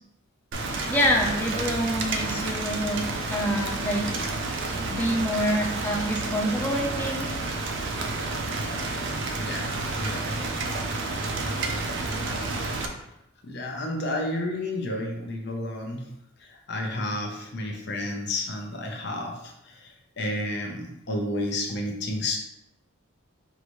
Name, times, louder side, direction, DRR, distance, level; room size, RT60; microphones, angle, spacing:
Rain, 0.5-12.9, right 3 dB, 60° right, 0.5 m, -30 dB
voice 1, 0.9-3.0 3.3-4.0 4.9-7.3, equal, 10° left, -2 dB, 0.6 m, -26 dB
voice 2, 9.4-10.3 13.4-16.1 16.4-22.4, left 1 dB, 50° left, 1 dB, 0.7 m, -31 dB
4.7 x 2.7 x 3.0 m, 0.83 s
head